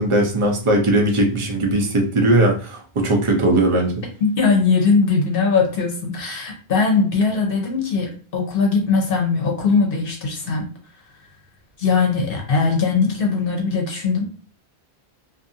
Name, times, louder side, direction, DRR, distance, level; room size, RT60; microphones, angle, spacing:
voice 1, 0.0-3.9, right 1 dB, 35° right, 2 dB, 0.6 m, -18 dB
voice 2, 4.2-10.7 11.8-14.2, left 4 dB, 60° left, 1 dB, 0.9 m, -20 dB
2.6 x 2.6 x 2.6 m, 0.40 s
omnidirectional pair, 1.1 m